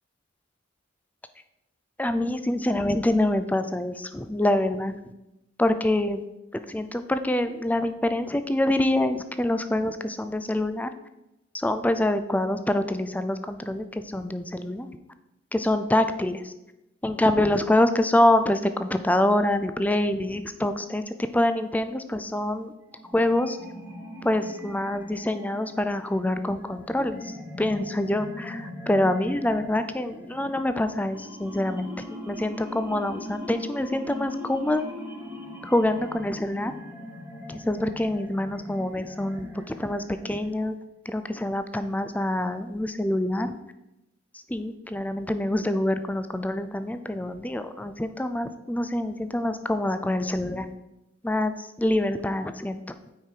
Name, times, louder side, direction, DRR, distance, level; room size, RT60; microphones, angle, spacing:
voice 1, 2.0-5.0 5.6-6.2 6.5-10.9 11.5-14.9 15.5-16.5 17.0-21.0 21.3-22.7 23.1-23.6 24.2-31.9 32.3-34.9 35.6-36.7 37.5-40.8 41.1-43.6 44.5-50.7 51.2-52.8, left 1 dB, 10° left, 10 dB, 0.4 m, -26 dB
sound 1, 22.9-40.8, left 1 dB, 10° right, 1.1 m, -41 dB
9.2 x 5.0 x 4.5 m, 0.92 s
head